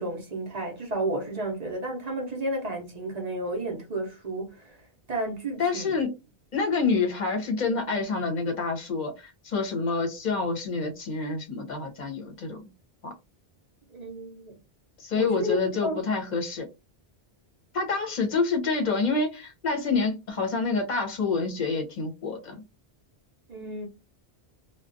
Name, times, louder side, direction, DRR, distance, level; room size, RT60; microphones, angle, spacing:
voice 1, 0.0-4.8 5.1-6.0 13.9-14.5 15.2-15.6 15.8-16.0 23.5-23.9, right 1 dB, 45° right, 0.7 m, -32 dB
voice 2, 5.6-6.1 6.5-12.6 13.0-13.1 15.0-16.7 17.7-22.6, left 4 dB, 45° left, 0.8 m, -27 dB
2.4 x 2.2 x 2.5 m
omnidirectional pair, 1.1 m